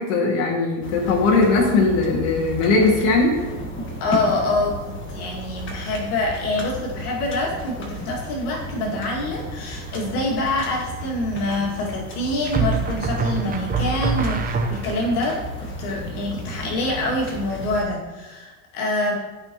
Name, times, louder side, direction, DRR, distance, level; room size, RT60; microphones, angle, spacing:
voice 1, 0.0-3.4, left 3 dB, 70° left, -2 dB, 2.1 m, -19 dB
sound 1, 0.8-17.8, equal, 25° left, 1.6 m, -34 dB
voice 2, 4.0-19.2, left 2 dB, 90° left, -2 dB, 2.2 m, -26 dB
sound 2, 9.9-10.4 12.5-15.2, right 4 dB, 20° right, 0.8 m, -25 dB
13.0 x 5.8 x 3.0 m, 1.2 s
supercardioid pair, 130°, 44 cm